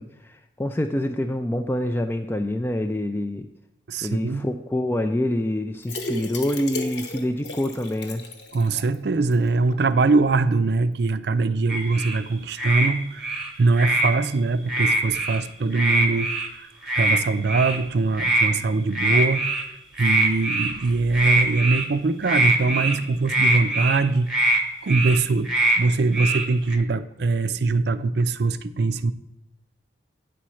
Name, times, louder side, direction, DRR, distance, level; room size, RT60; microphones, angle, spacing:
voice 1, 0.0-3.5 4.0-8.2, left 1 dB, 10° left, 6 dB, 0.3 m, -26 dB
voice 2, 3.9-4.5 8.5-16.7 16.9-19.5 20.0-24.3 24.8-25.5 25.8-29.1, right 3 dB, 60° right, 12 dB, 0.5 m, -22 dB
sound 1, 5.8-9.0 9.3-9.4 9.7-9.8, left 2 dB, 60° left, 1.1 m, -34 dB
sound 2, 11.7-12.2 12.6-12.9 13.2-14.1 14.7-15.4 15.7-16.5 16.9-17.2 17.4-17.8 18.1-18.5 18.9-19.6 20.0-20.8 21.1-21.8 22.2-23.0 23.3-24.0 24.3-24.6 24.9-25.2 25.4-25.8 26.1-26.8, right 2 dB, 5° right, 1.0 m, -22 dB
9.1 x 4.3 x 6.3 m, 0.92 s
head